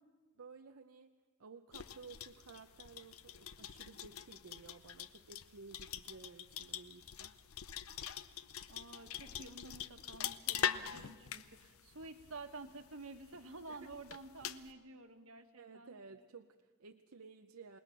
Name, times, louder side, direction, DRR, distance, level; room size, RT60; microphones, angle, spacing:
voice 1, 0.4-1.1 1.4-7.4 13.7-14.0 15.6-17.8, right 4 dB, 90° right, 6 dB, 0.7 m, -55 dB
sound 1, 1.7-14.7, left 9 dB, 85° left, 0.7 m, -44 dB
voice 2, 8.7-15.5 15.7-15.9, right 3 dB, 75° right, 6 dB, 1.6 m, -51 dB
27.5 x 19.5 x 6.0 m, 1.4 s
head